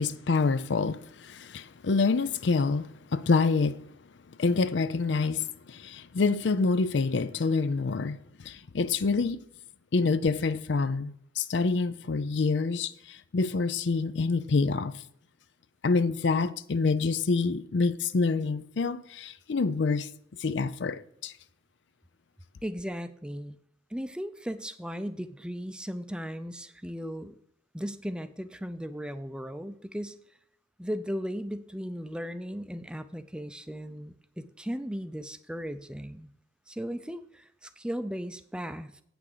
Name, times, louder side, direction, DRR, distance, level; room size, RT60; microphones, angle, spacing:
voice 1, 0.0-3.9 4.3-9.4 9.9-15.0 15.8-20.1 20.4-21.3, left 4 dB, 80° left, 0.5 m, -27 dB
voice 2, 22.6-23.6 23.9-27.3 27.7-30.2 30.8-36.3 36.7-39.0, equal, 5° right, 0.5 m, -36 dB
8.4 x 6.1 x 6.7 m
head